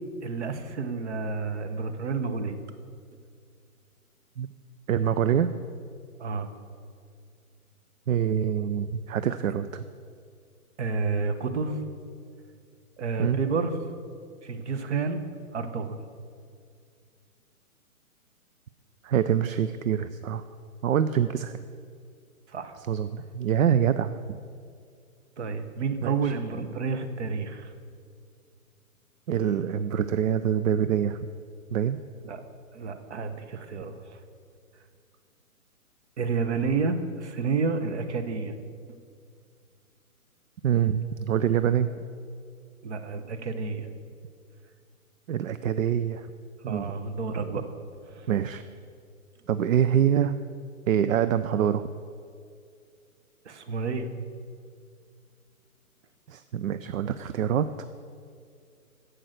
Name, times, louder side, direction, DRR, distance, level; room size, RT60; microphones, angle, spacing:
voice 1, 0.2-2.6 6.2-6.5 10.8-11.8 13.0-13.8 14.4-15.2 15.5-16.0 22.5-22.8 25.4-27.7 32.2-32.4 32.7-34.2 36.2-38.6 42.8-43.9 46.7-47.6 48.1-48.3 53.4-54.1, right 4 dB, 50° right, 9 dB, 1.0 m, -30 dB
voice 2, 4.9-5.5 8.1-9.9 13.2-13.4 19.0-20.5 20.8-21.6 22.9-24.4 26.0-26.3 29.3-31.2 31.7-32.0 40.6-41.9 45.3-46.3 46.6-46.9 48.3-48.6 49.5-50.4 50.9-51.9 56.3-57.9, right 9 dB, 65° right, 12 dB, 0.5 m, -25 dB
9.9 x 8.0 x 6.4 m, 2.3 s
hypercardioid pair, 155°, 44 cm